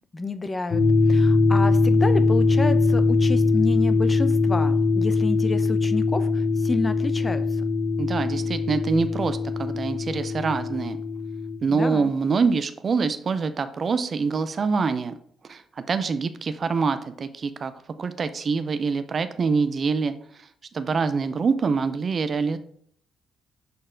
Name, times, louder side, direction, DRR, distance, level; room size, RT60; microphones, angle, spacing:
voice 1, 0.1-0.8 1.1-7.6 11.7-12.1, left 3 dB, 25° left, 10 dB, 0.6 m, -29 dB
sound 1, 0.7-11.6, left 3 dB, 50° left, 1.3 m, -21 dB
voice 2, 8.0-11.0 11.6-15.1 15.5-15.6 15.9-17.7 18.0-20.1 20.7-22.6, right 5 dB, 45° right, 11 dB, 0.5 m, -25 dB
6.9 x 4.2 x 3.8 m, 0.62 s
hypercardioid pair, 50°, 0 cm